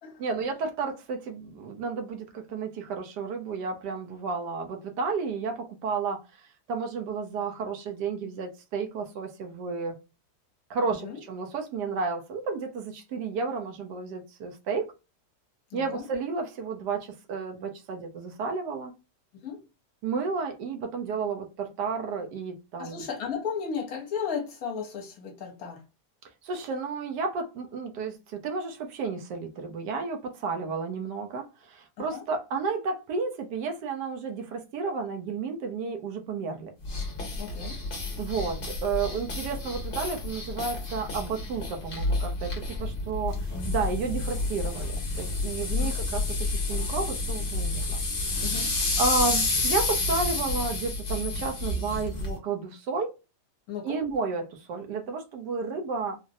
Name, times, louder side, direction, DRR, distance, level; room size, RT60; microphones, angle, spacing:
voice 1, 0.2-10.0 10.7-14.9 15.7-18.9 20.0-23.0 26.4-36.7 38.2-53.1 53.8-56.2, right 4 dB, 80° right, 1.3 m, -32 dB
voice 2, 15.7-16.0 19.4-19.6 22.8-25.8 32.0-32.2 37.4-37.8 45.8-45.9 48.4-48.7 53.7-54.0, left 6 dB, 65° left, 1.2 m, -35 dB
sound 1, 36.8-52.4, left 3 dB, 35° left, 1.0 m, -30 dB
3.8 x 2.0 x 2.6 m
omnidirectional pair, 1.8 m